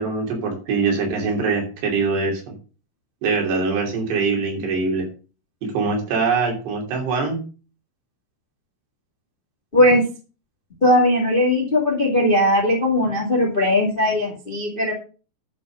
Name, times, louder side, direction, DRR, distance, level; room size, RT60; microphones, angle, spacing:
voice 1, 0.0-2.5 3.2-5.1 5.7-7.4, right 4 dB, 80° right, 1 dB, 5.0 m, -23 dB
voice 2, 10.8-14.9, left 1 dB, 25° left, 0 dB, 1.2 m, -18 dB
11.0 x 5.3 x 6.3 m, 0.36 s
omnidirectional pair, 4.8 m